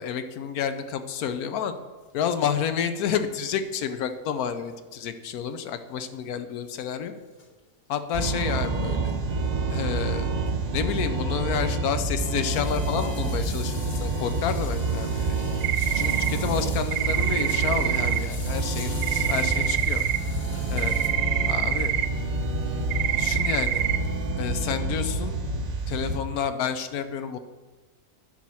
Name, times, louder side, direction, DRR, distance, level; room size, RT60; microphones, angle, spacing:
voice 1, 0.0-1.7 2.1-7.1 7.9-9.1 9.7-10.3 10.7-15.1 15.9-20.0 20.7-20.9 21.5-21.9 23.2-23.8 24.4-25.4 25.9-27.4, left 8 dB, 80° left, 10 dB, 1.1 m, -30 dB
sound 1, 2.0-2.1 2.3-2.4 2.6-2.7 4.4-4.5 4.7-4.8 5.8-5.9 7.4-7.6 8.7-8.8 9.5-9.6 9.9-10.0 10.5-10.7 10.9-11.0 11.6-21.1, left 3 dB, 45° left, 1.3 m, -44 dB
sound 2, 8.1-26.2, right 3 dB, 40° right, 0.6 m, -28 dB
sound 3, 15.6-16.3 16.9-18.2 19.0-20.2 20.8-22.1 22.9-24.0, right 11 dB, 75° right, 1.0 m, -26 dB
10.5 x 4.3 x 6.1 m, 1.3 s
omnidirectional pair, 1.6 m